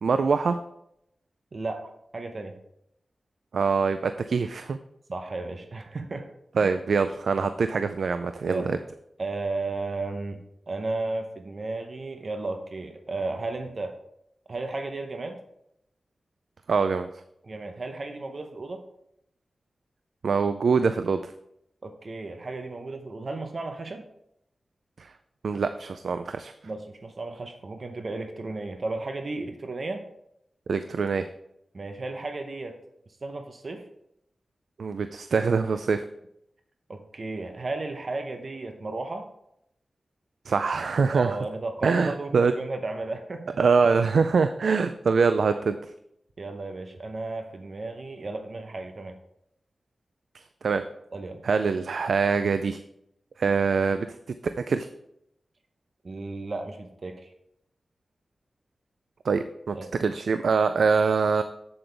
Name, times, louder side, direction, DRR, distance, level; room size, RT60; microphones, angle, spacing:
voice 1, 0.0-0.6 3.5-4.8 6.6-8.8 16.7-17.2 20.2-21.3 25.0-25.1 25.4-26.5 30.7-31.3 34.8-36.0 40.5-41.4 41.8-42.5 43.6-45.9 50.3-50.8 51.4-52.8 53.4-54.1 54.6-54.9 59.2-59.7 60.0-61.4, right 5 dB, 85° right, 9 dB, 0.4 m, -24 dB
voice 2, 1.5-2.6 5.1-6.3 6.6-6.7 8.5-8.7 9.2-13.9 14.5-15.4 17.4-18.8 21.8-24.0 26.6-30.0 31.7-32.8 33.2-33.9 36.9-39.3 41.1-43.5 46.4-49.2 51.1-51.4 56.0-57.3 59.7-59.9, right 3 dB, 50° right, 6 dB, 0.8 m, -34 dB
7.8 x 7.8 x 3.4 m, 0.77 s
wide cardioid pair, 95°, 0 cm